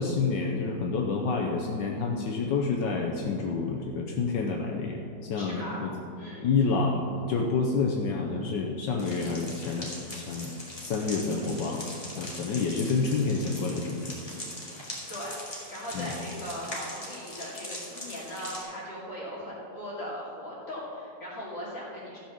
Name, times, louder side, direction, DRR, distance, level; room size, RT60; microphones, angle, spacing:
voice 1, 0.0-5.9 6.4-10.5 10.8-11.9 12.2-14.2 14.5-14.7 15.9-16.1, left 4 dB, 75° left, 0 dB, 1.5 m, -28 dB
voice 2, 5.3-5.8 6.2-6.5 15.1-22.2, equal, 45° left, -7 dB, 3.0 m, -39 dB
sound 1, 9.0-18.6, left 1 dB, 20° left, 2.5 m, -41 dB
13.5 x 5.8 x 7.0 m, 2.7 s
omnidirectional pair, 2.0 m